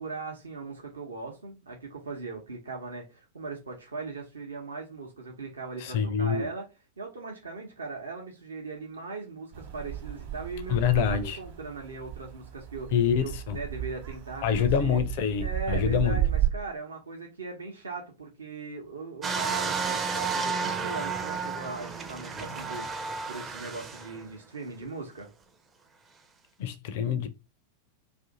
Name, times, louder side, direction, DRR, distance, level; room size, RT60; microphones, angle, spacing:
voice 1, 0.0-6.7 7.0-12.9 13.2-15.0 15.4-25.3, right 3 dB, 70° right, 0.8 m, -39 dB
voice 2, 5.8-6.5 10.7-11.4 12.9-13.6 14.4-16.2 26.6-27.3, left 8 dB, 50° left, 0.5 m, -26 dB
sound 1, 9.5-16.5, right 12 dB, 45° right, 1.0 m, -33 dB
sound 2, 19.2-24.2 24.8-24.9, right 5 dB, 20° right, 0.5 m, -32 dB
2.6 x 2.6 x 3.7 m
figure-of-eight pair, 90°, 0 cm